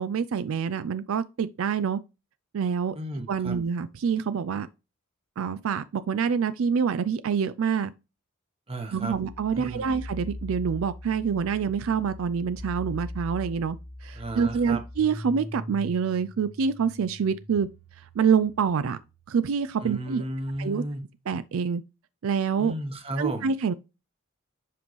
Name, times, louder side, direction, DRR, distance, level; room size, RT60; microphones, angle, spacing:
voice 1, 0.0-2.0 2.5-3.0 3.3-4.7 5.4-7.9 8.9-13.8 14.0-17.7 18.2-19.0 19.3-20.2 20.6-20.8 21.3-21.8 22.2-22.7 23.2-23.7, right 6 dB, 75° right, 0.4 m, -26 dB
voice 2, 2.9-3.6 8.7-9.2 9.5-9.9 14.1-14.8 19.8-21.0 22.6-23.5, right 1 dB, 30° right, 1.1 m, -34 dB
sound 1, 9.1-20.5, left 1 dB, 70° left, 2.0 m, -41 dB
7.5 x 5.3 x 3.0 m
head